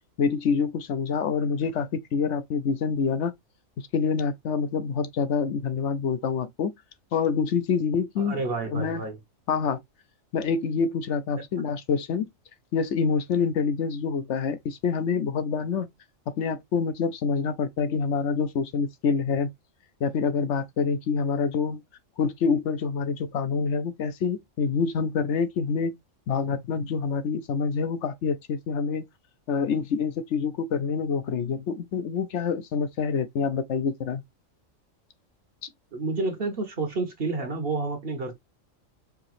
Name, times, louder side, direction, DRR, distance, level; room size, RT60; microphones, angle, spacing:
voice 1, 0.2-3.3 3.9-6.7 7.1-8.4 8.7-9.0 9.5-9.8 10.3-12.3 12.7-15.9 16.4-19.5 20.0-21.8 22.2-25.9 26.3-29.0 29.5-34.2, left 5 dB, 65° left, 0.9 m, -26 dB
voice 2, 8.2-9.2 11.3-11.4 35.9-38.3, right 3 dB, 50° right, 1.1 m, -30 dB
4.8 x 2.8 x 3.1 m
omnidirectional pair, 1.4 m